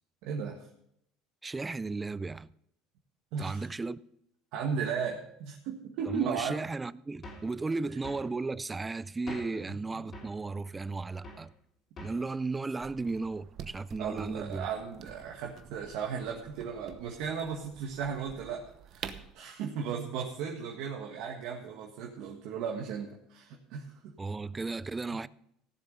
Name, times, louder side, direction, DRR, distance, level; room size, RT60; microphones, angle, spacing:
voice 1, 0.2-0.7 3.3-3.6 4.5-6.6 9.7-10.0 14.0-18.6 18.9-24.1, right 6 dB, 70° right, 1.7 m, -36 dB
voice 2, 1.4-2.5 3.4-4.0 6.1-11.5 12.0-14.7 24.2-25.3, right 3 dB, 15° right, 0.4 m, -35 dB
sound 1, 7.2-7.5 8.0-8.3 9.3-9.6 10.1-10.4 11.2-11.5 12.0-12.3, left 2 dB, 35° left, 3.6 m, -45 dB
sound 2, 12.8-19.3, right 9 dB, 50° right, 1.0 m, -48 dB
16.0 x 7.3 x 5.4 m
supercardioid pair, 105°, 0 cm